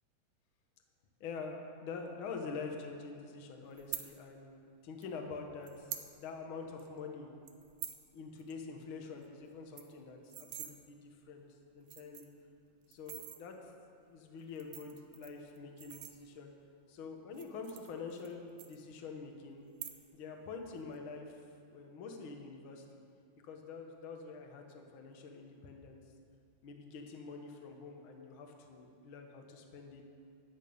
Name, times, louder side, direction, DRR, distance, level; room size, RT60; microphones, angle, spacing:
voice 1, 1.2-5.9 6.2-7.3 8.1-11.4 11.7-12.3 12.9-13.6 14.0-16.5 16.9-19.6 20.1-21.4 21.7-23.0 23.4-26.0 26.6-30.0, left 4 dB, 55° left, 3 dB, 1.5 m, -46 dB
sound 1, 3.8-4.1 5.0-5.1 5.6-6.1 6.5-6.6 6.8-7.0 7.5-8.0 8.4-8.5 8.8-8.9 9.2-9.3 9.6-10.7 11.4-11.5 11.8-12.4 12.9-13.4 14.4-16.6 17.2-18.3 18.6-19.2 19.7-20.3 20.5-21.0, right 12 dB, 85° right, 2.2 m, -46 dB
13.5 x 8.4 x 5.4 m, 2.5 s
omnidirectional pair, 3.5 m